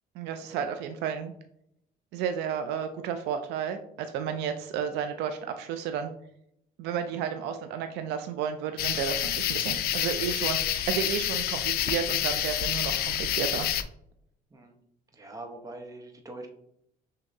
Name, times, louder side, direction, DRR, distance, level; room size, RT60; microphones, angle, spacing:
voice 1, 0.2-1.3 2.1-6.1 6.8-13.7, right 8 dB, 85° right, 7 dB, 0.4 m, -32 dB
sound 1, 8.8-13.8, left 11 dB, 65° left, 0.4 m, -28 dB
voice 2, 15.1-16.5, right 2 dB, 20° right, 3 dB, 1.0 m, -43 dB
6.2 x 2.8 x 2.7 m, 0.74 s
cardioid pair, 110°, 17 cm